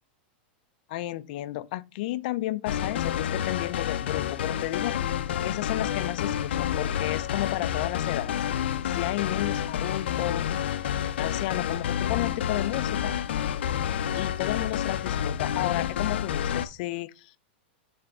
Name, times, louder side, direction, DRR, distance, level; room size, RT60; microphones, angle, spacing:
voice 1, 0.9-8.4 8.9-10.5 11.2-13.1 14.1-17.4, left 16 dB, 50° left, 0.5 m, -32 dB
sound 1, 2.7-16.7, left 9 dB, 90° left, 0.6 m, -29 dB
7.6 x 3.4 x 4.8 m
supercardioid pair, 160°, 6 cm